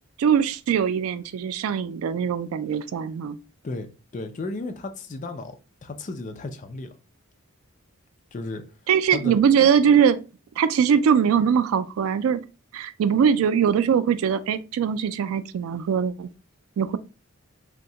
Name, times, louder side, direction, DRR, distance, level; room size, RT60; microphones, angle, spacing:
voice 1, 0.2-3.4 8.9-10.2 10.6-12.4 12.7-16.3 16.8-17.0, right 7 dB, 80° right, 0.3 m, -21 dB
voice 2, 3.6-5.6 5.8-6.9 8.3-8.7 9.1-9.4, left 2 dB, 35° left, 0.4 m, -34 dB
2.7 x 2.1 x 3.7 m
head